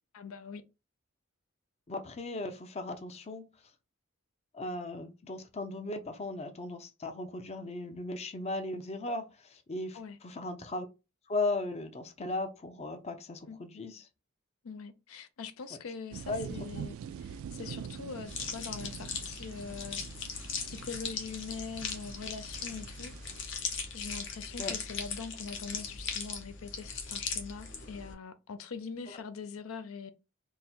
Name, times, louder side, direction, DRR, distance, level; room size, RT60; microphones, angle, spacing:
voice 1, 0.1-0.6 9.9-10.2 13.5-13.6 14.6-23.1 23.9-30.1, left 5 dB, 75° left, 0.5 m, -43 dB
voice 2, 1.9-3.5 4.5-10.9 11.3-14.1 15.7-15.8 16.3-16.8 24.6-24.8 29.1-29.2, left 2 dB, 30° left, 0.5 m, -37 dB
sound 1, 16.1-23.4, right 7 dB, 70° right, 0.3 m, -45 dB
sound 2, 18.3-28.1, left 5 dB, 60° left, 0.9 m, -39 dB
3.8 x 2.1 x 4.3 m
head